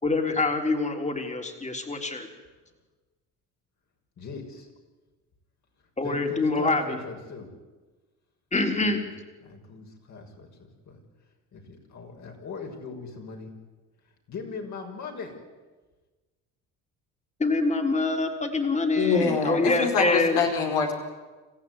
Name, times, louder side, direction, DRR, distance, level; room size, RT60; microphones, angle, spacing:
voice 1, 0.0-2.3 6.0-7.0 8.5-9.0 17.4-20.4, left 3 dB, 20° left, 5 dB, 3.8 m, -25 dB
voice 2, 4.2-4.7 6.0-7.5 9.0-9.1 9.4-11.0 11.5-13.5 14.3-15.3, left 4 dB, 50° left, 2 dB, 6.6 m, -39 dB
voice 3, 19.0-20.9, left 5 dB, 70° left, 1 dB, 4.9 m, -25 dB
27.0 x 15.0 x 9.9 m, 1.3 s
supercardioid pair, 85°, 35 cm